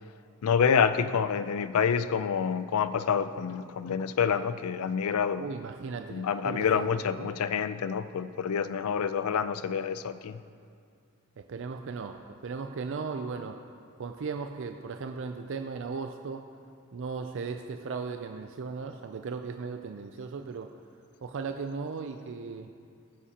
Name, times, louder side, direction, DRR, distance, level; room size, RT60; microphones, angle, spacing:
voice 1, 0.4-5.5 6.1-10.4, left 6 dB, 85° left, 13 dB, 0.4 m, -27 dB
voice 2, 5.4-7.3 11.4-13.6 14.0-16.4 16.9-20.7 21.2-22.7, right 5 dB, 60° right, 6 dB, 0.4 m, -37 dB
16.5 x 9.6 x 2.9 m, 2.3 s
head